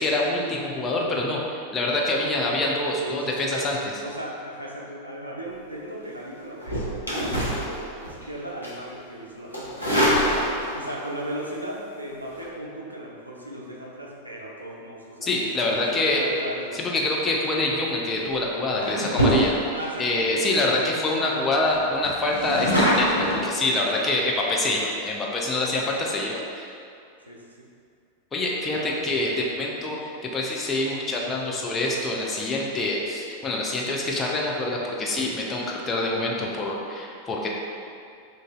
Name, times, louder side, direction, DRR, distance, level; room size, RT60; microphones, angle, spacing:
voice 1, 0.0-3.8 15.2-16.2 16.7-19.5 20.0-26.7 28.3-30.0 30.3-37.5, left 2 dB, 20° left, -2 dB, 0.5 m, -25 dB
voice 2, 2.0-2.4 3.0-3.7 4.0-9.8 10.7-16.9 19.2-20.4 20.7-21.5 21.7-21.9 27.3-27.7 28.7-28.9, right 1 dB, 85° right, -2 dB, 0.5 m, -37 dB
sound 1, 6.6-8.3 8.6-8.9 9.5-10.9 12.2-12.5 17.5-17.8 18.3-18.4 18.8-19.9 20.4-20.5 20.8-20.9 21.2-21.3 21.6-23.4, equal, 85° left, 0.8 m, -24 dB
3.0 x 2.6 x 3.6 m, 2.4 s
figure-of-eight pair, 90°, 0 cm